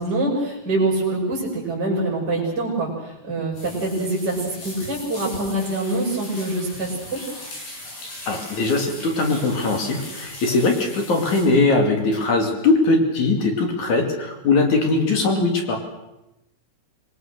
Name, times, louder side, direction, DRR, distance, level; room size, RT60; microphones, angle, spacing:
voice 1, 0.0-7.2, right 2 dB, 25° right, -4 dB, 6.8 m, -25 dB
sound 1, 3.5-11.4, left 1 dB, 70° left, 9.8 m, -39 dB
voice 2, 8.3-15.8, left 3 dB, 50° left, 3 dB, 3.7 m, -20 dB
26.0 x 20.5 x 6.7 m, 0.92 s
omnidirectional pair, 4.7 m